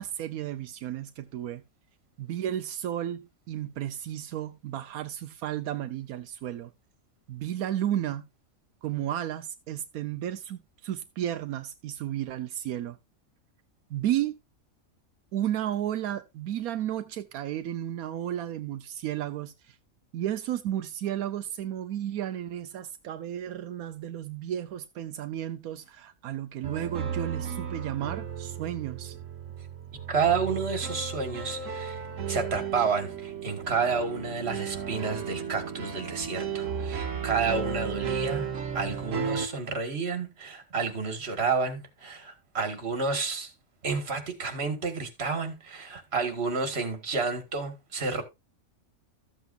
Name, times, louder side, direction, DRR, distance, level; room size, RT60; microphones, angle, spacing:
voice 1, 0.0-1.6 2.2-6.7 7.3-8.2 8.8-13.0 13.9-14.3 15.3-19.8 20.1-29.2, right 11 dB, 85° right, 1.1 m, -33 dB
sound 1, 26.6-39.5, right 7 dB, 60° right, 1.4 m, -34 dB
voice 2, 30.1-43.5 43.8-48.2, right 5 dB, 45° right, 1.9 m, -30 dB
13.5 x 8.0 x 2.4 m
omnidirectional pair, 1.5 m